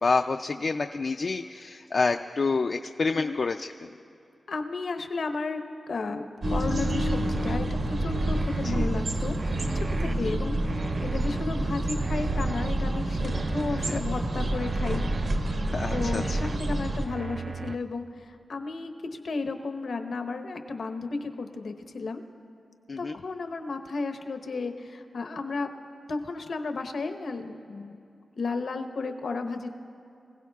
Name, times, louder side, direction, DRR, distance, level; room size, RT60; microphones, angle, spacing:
voice 1, 0.0-3.9 8.6-8.9 10.1-10.3 13.8-14.0 15.7-16.4 22.9-23.1, left 4 dB, 55° left, 6 dB, 0.4 m, -28 dB
voice 2, 3.1-3.4 4.5-5.6 5.9-9.4 9.7-15.0 15.9-22.2 23.0-25.7 26.1-28.0 28.3-29.7, left 3 dB, 75° left, 6 dB, 1.0 m, -33 dB
sound 1, 6.4-17.1, right 1 dB, 70° right, 1.3 m, -28 dB
sound 2, 6.8-7.6 8.1-8.9 9.4-10.2 10.6-11.4 11.9-12.7 13.2-14.0 14.5-15.3 15.8-16.6 17.1-17.8, right 5 dB, 45° right, 0.3 m, -37 dB
25.5 x 16.5 x 2.4 m, 2.7 s
wide cardioid pair, 110°, 0 cm